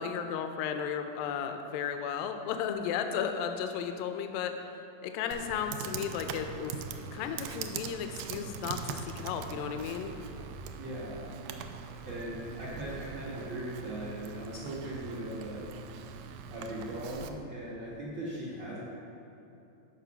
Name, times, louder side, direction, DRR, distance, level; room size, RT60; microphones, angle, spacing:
voice 1, 0.0-4.5 5.0-6.7 7.1-10.1, left 7 dB, 80° left, 6 dB, 2.1 m, -34 dB
Computer keyboard, 5.3-17.3, right 6 dB, 85° right, 1.9 m, -42 dB
voice 2, 10.8-11.3 12.1-15.7 16.5-18.8, right 1 dB, 65° right, -6 dB, 1.1 m, -39 dB
13.0 x 5.0 x 5.6 m, 3.0 s
omnidirectional pair, 4.4 m